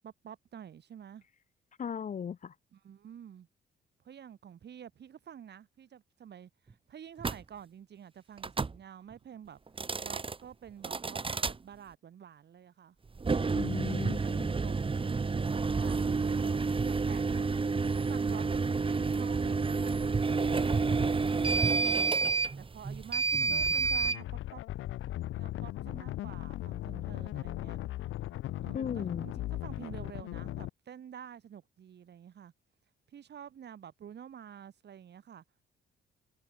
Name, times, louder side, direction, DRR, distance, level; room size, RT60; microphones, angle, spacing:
voice 1, 0.0-1.2 2.7-3.5 4.0-9.6 10.0-13.0 13.9-17.5 17.9-21.9 22.6-24.6 25.4-27.8 28.6-29.3 29.6-32.5 33.1-35.4, right 9 dB, 60° right, 4.4 m, -49 dB
voice 2, 1.8-2.5 13.5-14.5 28.7-29.3, left 7 dB, 40° left, 0.7 m, -36 dB
sound 1, 7.2-7.4 8.4-8.8 9.7-10.4 10.8-11.6 13.1-24.2, right 4 dB, 25° right, 2.0 m, -29 dB
sound 2, 23.3-30.7, left 15 dB, 85° left, 3.4 m, -38 dB
cardioid pair, 90°, 20 cm